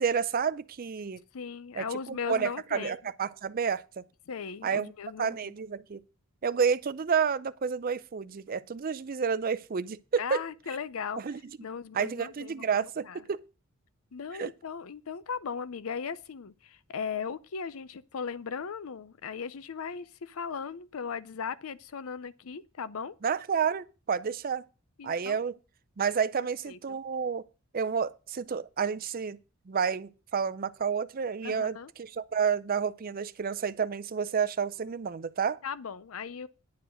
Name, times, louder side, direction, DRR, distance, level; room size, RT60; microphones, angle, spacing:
voice 1, 0.0-1.2 1.7-4.0 4.6-4.9 5.2-6.0 6.4-10.4 11.2-11.4 11.9-13.4 14.4-14.5 23.2-24.6 25.0-25.6 26.0-27.4 27.7-29.4 29.7-35.6, right 6 dB, 40° right, 0.4 m, -30 dB
voice 2, 1.3-2.9 4.3-5.4 10.2-11.2 11.6-13.2 14.1-23.1 25.0-25.4 26.3-27.0 31.4-31.9 35.6-36.5, left 6 dB, 75° left, 0.5 m, -38 dB
10.5 x 4.6 x 7.5 m
head